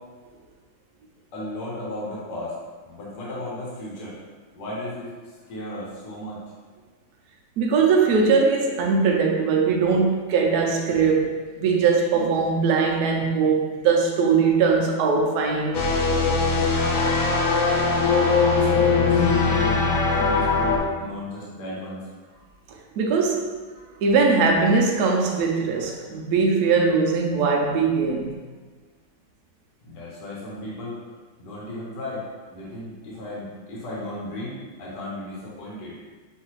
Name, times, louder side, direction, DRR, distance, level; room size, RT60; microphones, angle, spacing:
voice 1, 1.3-2.5 2.9-4.2 4.5-5.1 5.5-6.4 18.0-22.0 29.8-31.0 31.4-36.0, left 1 dB, 65° left, -6 dB, 1.5 m, -35 dB
voice 2, 7.6-15.8 23.0-23.5 24.0-28.3, right 5 dB, 70° right, 0 dB, 0.9 m, -21 dB
sound 1, 15.7-20.8, left 4 dB, 80° left, 0.7 m, -20 dB
5.6 x 2.7 x 3.0 m, 1.4 s
omnidirectional pair, 2.1 m